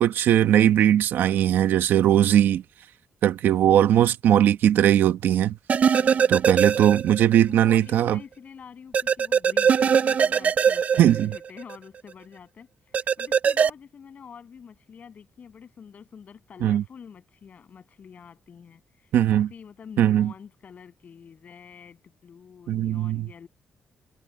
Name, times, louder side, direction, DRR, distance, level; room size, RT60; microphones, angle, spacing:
voice 1, 0.0-2.6 3.2-5.6 6.3-8.2 11.0-11.3 16.6-16.8 19.1-19.5 20.0-20.3 22.7-23.3, right 11 dB, 85° right, 1.2 m, -19 dB
sound 1, 5.7-7.4 7.7-7.8 8.9-11.8 12.9-13.7, right 7 dB, 45° right, 0.4 m, -21 dB
voice 2, 5.9-6.3 6.8-6.9 7.5-23.5, left 7 dB, 50° left, 7.9 m, -47 dB
cardioid pair, 125°, 3 cm